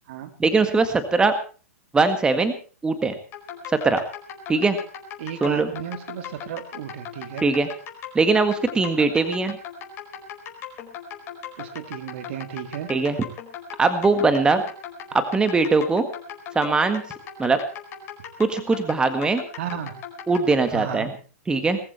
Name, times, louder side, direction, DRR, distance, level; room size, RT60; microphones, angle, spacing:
voice 1, 0.4-1.3 1.9-2.5 2.8-3.1 3.8-4.0 4.5-4.8 5.4-5.7 7.4-7.7 8.1-9.6 12.9-13.2 13.8-14.6 15.3-16.0 16.5-17.0 17.4-17.6 18.4-19.4 20.3-21.1 21.5-21.8, right 3 dB, 10° right, 9 dB, 1.7 m, -20 dB
sound 1, 3.3-20.7, left 9 dB, 30° left, 4.8 m, -38 dB
voice 2, 5.2-7.5 11.6-12.9 19.6-20.0 20.7-21.2, right 10 dB, 55° right, 8 dB, 2.5 m, -34 dB
20.0 x 14.5 x 4.4 m, 0.38 s
hypercardioid pair, 115°, 8 cm